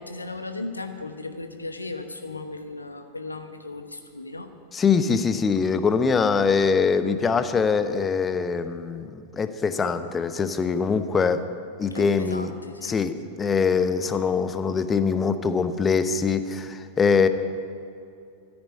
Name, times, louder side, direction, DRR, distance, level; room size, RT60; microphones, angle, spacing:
voice 1, 0.0-4.5 11.9-12.9, left 2 dB, 80° left, 7 dB, 1.1 m, -36 dB
voice 2, 4.7-11.5 11.8-12.5 12.8-17.3, left 5 dB, 20° left, 11 dB, 0.8 m, -23 dB
14.0 x 9.8 x 9.6 m, 2.5 s
figure-of-eight pair, 90°, 0 cm